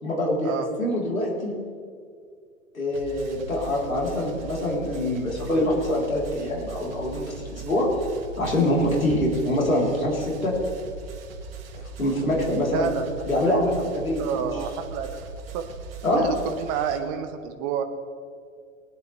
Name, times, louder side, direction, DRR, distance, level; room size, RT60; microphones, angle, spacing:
voice 1, 0.0-1.5 2.7-7.9 8.4-10.5 11.7-12.9 13.2-14.6 16.0-16.3, left 1 dB, 80° left, -3 dB, 3.6 m, -25 dB
sound 1, 2.9-17.0, right 4 dB, 45° right, 1.6 m, -40 dB
voice 2, 12.7-13.1 13.5-13.6 14.2-15.1 15.5-15.6 16.1-17.8, right 8 dB, 25° right, 7 dB, 0.8 m, -29 dB
20.5 x 10.0 x 3.2 m, 2.2 s
figure-of-eight pair, 110°, 41 cm